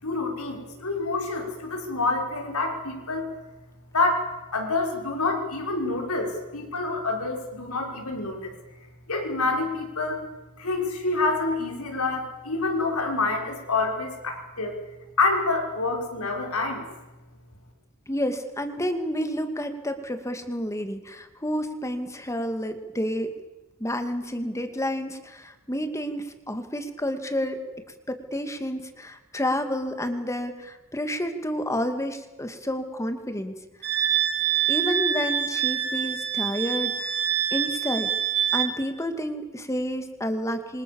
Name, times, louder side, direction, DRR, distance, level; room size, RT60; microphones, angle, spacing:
voice 1, 0.0-3.3 3.9-4.2 4.5-8.6 9.1-10.2 10.6-14.7 15.2-16.8, left 3 dB, 85° left, 2 dB, 6.1 m, -27 dB
voice 2, 18.1-23.3 23.8-27.6 28.1-33.6 34.7-37.2 37.5-38.1 38.5-40.8, equal, 15° left, 7 dB, 2.4 m, -30 dB
Wind instrument woodwind instrument, 33.8-38.7, right 9 dB, 50° right, 4.1 m, -25 dB
27.5 x 25.5 x 7.2 m, 1.1 s
head